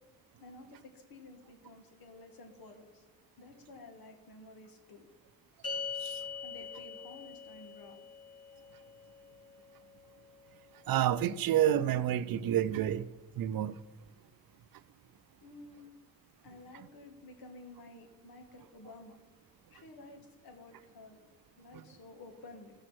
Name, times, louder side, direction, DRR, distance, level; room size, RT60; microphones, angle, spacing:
voice 1, 0.4-3.0 3.4-5.1 6.4-8.0 15.4-15.9 16.4-19.2 19.7-21.2 21.6-22.7, left 2 dB, 80° left, 1.8 m, -52 dB
sound 1, 5.6-12.2, left 6 dB, 45° left, 2.4 m, -44 dB
voice 2, 10.9-13.1 13.4-13.8, right 11 dB, 70° right, 0.6 m, -29 dB
15.0 x 6.5 x 4.3 m
supercardioid pair, 50°, 36 cm